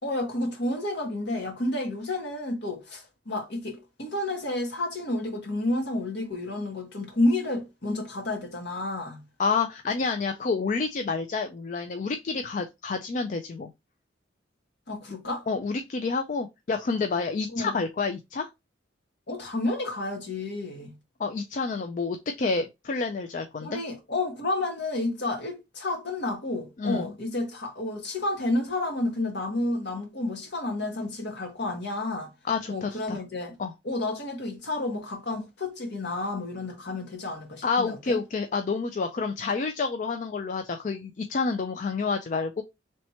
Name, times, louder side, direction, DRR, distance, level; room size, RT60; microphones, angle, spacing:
voice 1, 0.0-9.2 14.9-15.5 17.5-17.8 19.3-20.9 23.6-32.3 32.7-33.6 33.8-38.2, left 2 dB, 60° left, 1.4 m, -30 dB
voice 2, 9.4-13.7 15.5-18.5 21.2-23.8 26.8-27.1 32.4-33.2 33.6-33.7 37.6-42.6, left 4 dB, 40° left, 0.3 m, -29 dB
3.3 x 2.8 x 4.2 m
head